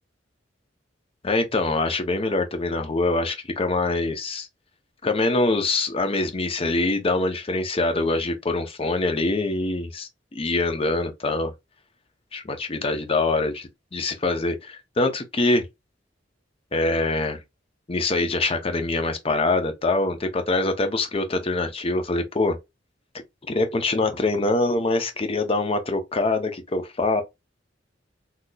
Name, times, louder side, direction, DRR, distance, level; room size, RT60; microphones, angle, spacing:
voice 1, 1.2-4.5 5.0-11.5 12.3-15.6 16.7-17.4 17.9-22.6 23.5-27.2, left 2 dB, 30° left, 0.6 m, -24 dB
3.8 x 2.8 x 2.2 m
head